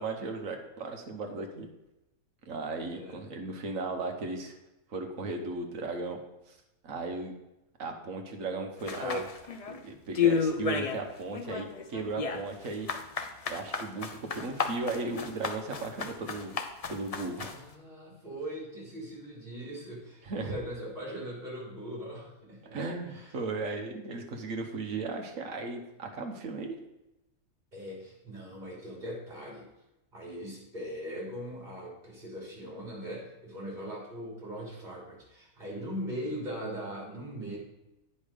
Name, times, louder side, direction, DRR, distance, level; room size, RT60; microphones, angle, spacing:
voice 1, 0.0-1.7 2.5-4.5 4.9-6.2 6.5-6.6 6.8-7.3 7.8-9.3 9.7-12.9 13.5-16.6 16.9-17.5 20.2-20.5 22.7-26.8, right 3 dB, 65° right, 4 dB, 1.4 m, -36 dB
voice 2, 2.9-3.2 12.0-12.2 17.4-22.8 23.1-23.3 27.7-29.7 30.1-37.6, equal, 30° right, -5 dB, 3.4 m, -40 dB
sound 1, 8.9-9.8 10.1-11.0 11.3-17.6, left 6 dB, 50° left, 0.4 m, -31 dB
9.4 x 5.4 x 5.0 m, 0.94 s
omnidirectional pair, 1.6 m